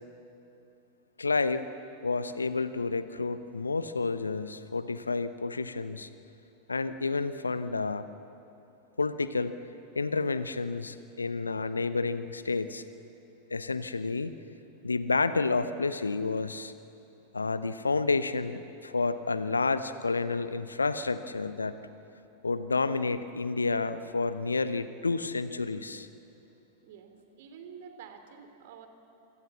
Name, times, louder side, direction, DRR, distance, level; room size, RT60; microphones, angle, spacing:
voice 1, 1.2-1.7 2.0-6.1 6.7-8.0 9.0-9.5 9.9-12.8 13.5-14.3 14.8-16.7 17.3-21.8 22.4-26.1, left 3 dB, 80° left, 13 dB, 1.0 m, -30 dB
voice 2, 26.8-28.9, right 7 dB, 55° right, 7 dB, 3.1 m, -48 dB
27.0 x 25.5 x 7.2 m, 3.0 s
figure-of-eight pair, 90°, 0 cm